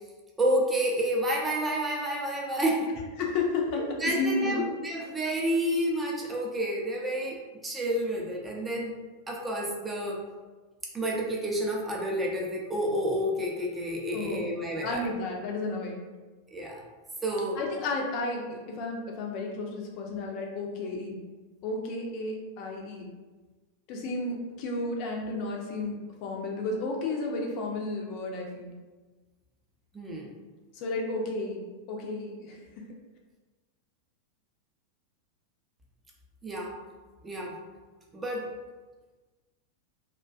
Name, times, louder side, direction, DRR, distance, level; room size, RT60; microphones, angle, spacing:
voice 1, 0.4-2.9 4.0-7.4 7.6-9.0 9.3-10.2 10.9-15.0 16.5-16.8 17.2-17.6 29.9-30.3 36.4-36.8 37.2-37.6 38.1-38.5, right 1 dB, 15° right, -1 dB, 0.5 m, -29 dB
voice 2, 3.2-4.6 14.1-14.5 14.8-16.0 17.6-21.2 21.6-23.1 23.9-28.7 30.7-32.6, left 2 dB, 40° left, 0 dB, 0.5 m, -32 dB
2.4 x 2.2 x 2.3 m, 1.3 s
figure-of-eight pair, 90°, 0 cm